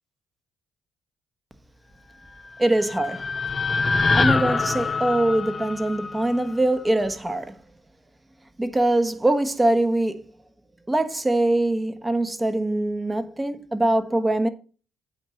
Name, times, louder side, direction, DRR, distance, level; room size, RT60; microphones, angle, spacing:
sound 1, 2.4-6.7, left 4 dB, 35° left, 0.8 m, -25 dB
voice 1, 2.6-3.2 4.1-7.5 8.6-10.2 10.9-14.5, right 1 dB, 15° right, 1.2 m, -23 dB
8.8 x 4.5 x 6.4 m
cardioid pair, 90°, 0 cm